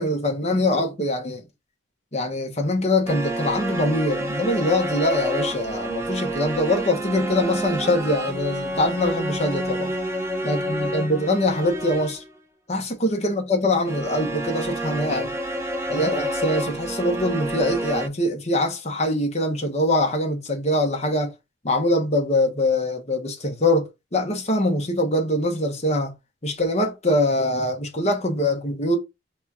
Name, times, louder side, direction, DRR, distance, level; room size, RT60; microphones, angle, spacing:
voice 1, 0.0-1.4 2.1-9.9 10.4-12.2 12.7-15.3 15.9-21.3 21.6-26.1 26.4-29.0, left 1 dB, 35° left, 1.0 m, -23 dB
sound 1, 3.1-12.3 13.8-18.1, right 1 dB, 15° right, 0.6 m, -29 dB
4.2 x 2.4 x 4.1 m
head